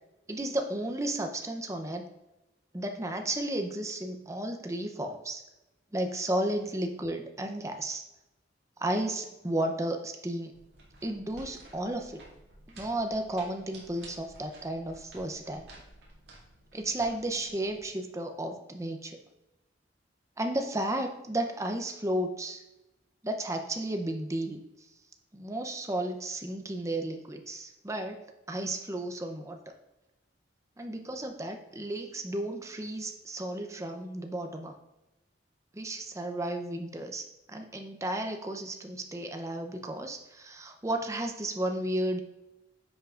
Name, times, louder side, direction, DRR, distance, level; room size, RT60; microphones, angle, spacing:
voice 1, 0.3-2.1 2.7-5.4 5.9-8.0 8.8-10.6 11.0-12.2 12.7-15.7 16.7-19.2 20.4-22.6 23.2-24.6 25.3-29.6 30.8-34.8 35.7-42.2, right 1 dB, 15° right, 4 dB, 0.6 m, -33 dB
sound 1, 10.5-17.9, right 1 dB, 60° right, 2.4 m, -53 dB
10.0 x 5.7 x 2.5 m, 0.98 s
head